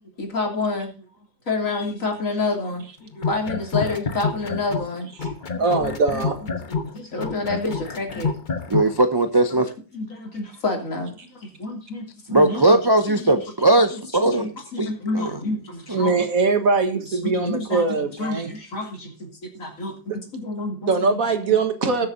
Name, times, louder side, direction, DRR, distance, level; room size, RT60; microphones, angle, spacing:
voice 1, 0.2-1.1 1.5-5.1 5.5-8.6 9.9-12.8 13.1-13.3 13.9-16.2 16.9-21.1 21.4-21.6, left 3 dB, 55° left, 3.3 m, -29 dB
sound 1, 3.1-4.9 5.2-8.9, left 4 dB, 35° left, 1.1 m, -27 dB
voice 2, 5.6-6.4 15.9-18.5 20.9-22.1, right 4 dB, 60° right, 1.9 m, -21 dB
voice 3, 8.7-9.7 12.3-15.3 15.9-16.0, right 2 dB, 20° right, 0.6 m, -19 dB
20.0 x 7.5 x 2.7 m
omnidirectional pair, 1.7 m